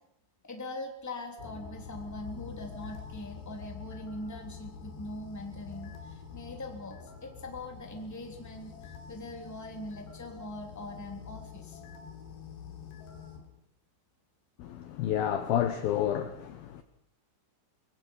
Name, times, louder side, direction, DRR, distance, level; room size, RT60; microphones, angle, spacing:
voice 1, 0.4-11.8, left 1 dB, 5° left, 1.9 m, -42 dB
sound 1, 1.4-13.5, left 7 dB, 65° left, 4.5 m, -46 dB
voice 2, 14.6-16.8, left 10 dB, 85° left, 2.1 m, -30 dB
24.0 x 22.5 x 5.6 m
omnidirectional pair, 5.8 m